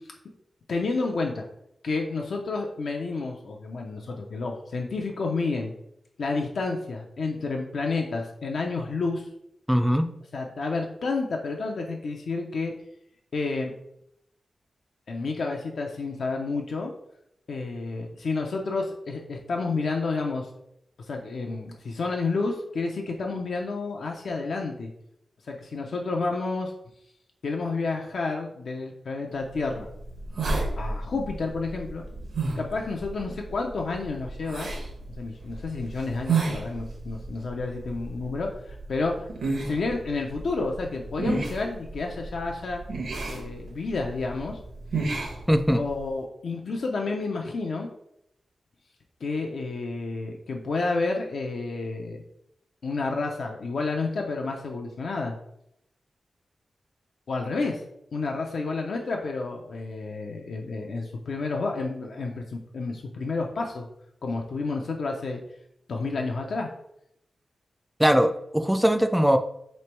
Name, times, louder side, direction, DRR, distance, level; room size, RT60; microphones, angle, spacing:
voice 1, 0.7-1.5 1.8-5.7 6.2-9.3 10.3-12.7 13.3-13.7 15.1-16.9 17.5-20.5 21.1-24.9 25.5-26.7 27.4-29.9 30.8-32.0 32.6-34.7 35.2-39.3 39.7-42.8 43.3-44.6 45.7-47.9 49.2-52.2 52.8-55.3 57.3-57.8 58.1-63.9 64.2-65.4 65.9-66.7, left 3 dB, 75° left, 1 dB, 0.5 m, -30 dB
voice 2, 9.7-10.1 45.5-45.8 68.0-69.4, equal, 5° right, 7 dB, 0.3 m, -21 dB
sound 1, 29.5-46.1, right 3 dB, 75° right, 0.9 m, -33 dB
3.2 x 3.0 x 4.4 m, 0.78 s
wide cardioid pair, 105°, 0 cm